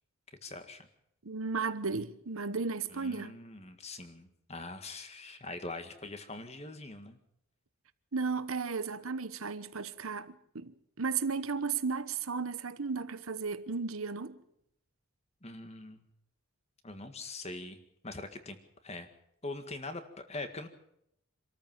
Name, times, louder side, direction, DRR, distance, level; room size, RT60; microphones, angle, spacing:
voice 1, 0.4-0.9 2.9-7.2 15.4-16.1 16.8-17.8 18.0-18.6 18.8-19.1 19.4-20.7, left 2 dB, 30° left, 1.8 m, -43 dB
voice 2, 1.2-3.4 8.1-14.4, right 5 dB, 80° right, 1.1 m, -34 dB
26.5 x 13.5 x 7.4 m
head